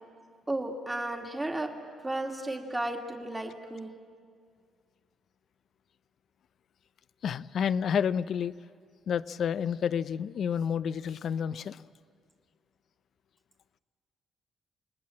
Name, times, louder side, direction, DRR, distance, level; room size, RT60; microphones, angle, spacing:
voice 1, 0.5-1.7 2.0-3.9, right 1 dB, 15° right, 2 dB, 2.1 m, -33 dB
voice 2, 7.2-8.5 9.1-11.8, left 7 dB, 60° left, 15 dB, 0.6 m, -29 dB
27.0 x 20.0 x 7.6 m, 2.1 s
cardioid pair, 90°, 0 cm